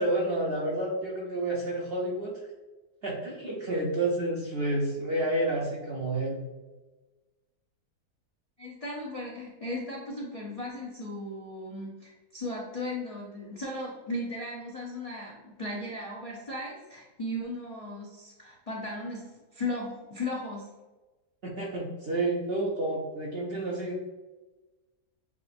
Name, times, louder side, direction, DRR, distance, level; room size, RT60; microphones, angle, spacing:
voice 1, 0.0-2.4 3.0-6.4 21.4-24.0, right 1 dB, 55° right, -3 dB, 0.7 m, -30 dB
voice 2, 8.6-20.7, left 1 dB, 45° left, -4 dB, 0.4 m, -36 dB
7.2 x 2.5 x 2.5 m, 1.2 s
omnidirectional pair, 1.7 m